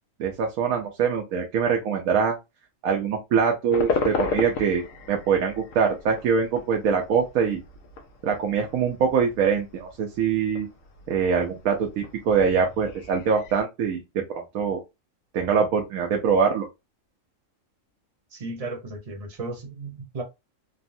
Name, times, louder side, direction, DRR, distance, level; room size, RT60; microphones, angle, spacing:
voice 1, 0.2-2.4 2.8-7.6 8.2-10.7 11.1-14.8 15.3-16.7, right 6 dB, 90° right, 1.0 m, -23 dB
sound 1, 3.7-13.6, left 4 dB, 80° left, 1.0 m, -35 dB
voice 2, 18.3-20.2, right 3 dB, 35° right, 0.7 m, -35 dB
3.6 x 2.0 x 2.5 m
omnidirectional pair, 1.4 m